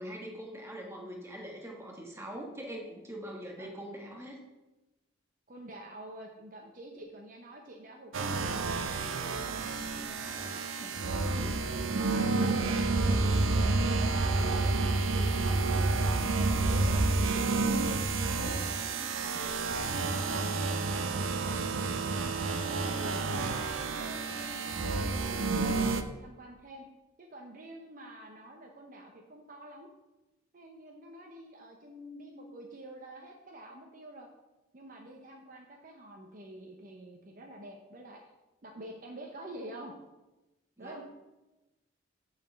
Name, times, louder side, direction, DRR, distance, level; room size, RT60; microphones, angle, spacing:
voice 1, 0.0-4.4 40.8-41.0, equal, 15° right, -1 dB, 1.3 m, -42 dB
voice 2, 5.5-11.5 11.9-13.2 13.6-15.8 16.1-20.0 20.3-20.5 20.9-22.3 22.7-25.2 25.7-26.9 27.2-29.9 30.5-34.3 34.7-38.2 38.6-39.9 40.8-41.0, right 1 dB, 45° right, 1 dB, 0.8 m, -47 dB
sound 1, 8.1-26.0, right 3 dB, 85° right, 0.6 m, -29 dB
7.0 x 4.2 x 6.7 m, 1.0 s
head